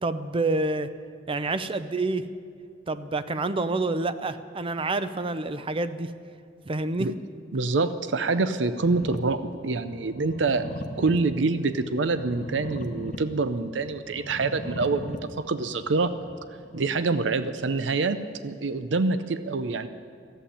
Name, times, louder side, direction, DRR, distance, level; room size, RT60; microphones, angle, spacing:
voice 1, 0.0-0.9 1.3-2.3 2.9-6.1 6.7-7.1 7.8-7.9, right 2 dB, 30° right, 12 dB, 0.6 m, -28 dB
voice 2, 7.5-10.7 11.0-15.2 15.5-16.1 16.7-19.9, right 3 dB, 75° right, 11 dB, 0.6 m, -26 dB
sound 1, 8.9-16.8, left 1 dB, 45° left, 1.0 m, -39 dB
14.0 x 8.4 x 10.0 m, 2.3 s
head